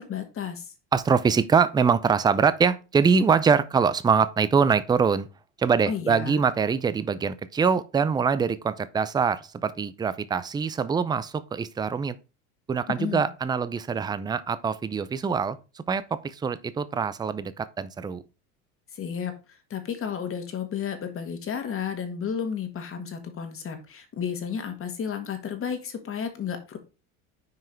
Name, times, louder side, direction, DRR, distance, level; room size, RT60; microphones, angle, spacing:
voice 1, 0.1-0.7 5.9-6.4 13.0-13.3 18.9-19.3 19.7-26.8, left 7 dB, 35° left, 1.6 m, -32 dB
voice 2, 0.9-5.3 5.6-12.2 12.7-18.2, right 6 dB, 10° right, 0.4 m, -24 dB
6.3 x 4.7 x 4.4 m
supercardioid pair, 105°, 39 cm